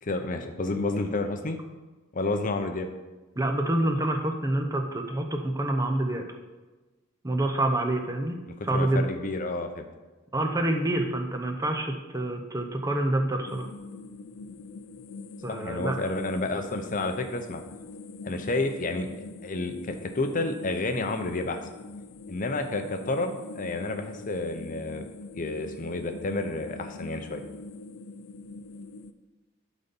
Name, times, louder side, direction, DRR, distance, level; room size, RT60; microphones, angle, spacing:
voice 1, 0.0-1.6 2.1-2.9 8.7-9.9 15.5-17.6 18.2-21.6 22.3-25.1 25.4-27.4, left 2 dB, 40° left, 6 dB, 0.6 m, -30 dB
voice 2, 3.4-6.3 7.2-8.4 8.6-9.1 10.3-13.7 15.4-15.9, right 1 dB, 15° right, 4 dB, 0.7 m, -27 dB
sound 1, 13.5-29.1, left 3 dB, 85° left, 0.5 m, -43 dB
12.0 x 4.1 x 5.3 m, 1.2 s
head